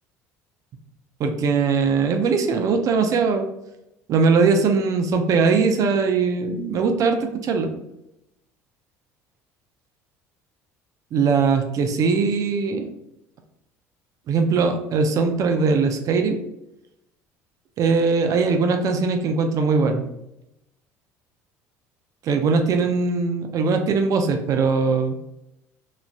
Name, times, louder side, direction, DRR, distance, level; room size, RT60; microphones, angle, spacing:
voice 1, 1.2-3.5 4.1-7.7 11.1-12.9 14.3-16.4 17.8-20.1 22.2-25.2, right 4 dB, 50° right, 6 dB, 0.5 m, -20 dB
3.0 x 2.4 x 2.2 m, 0.86 s
supercardioid pair, 80°, 7 cm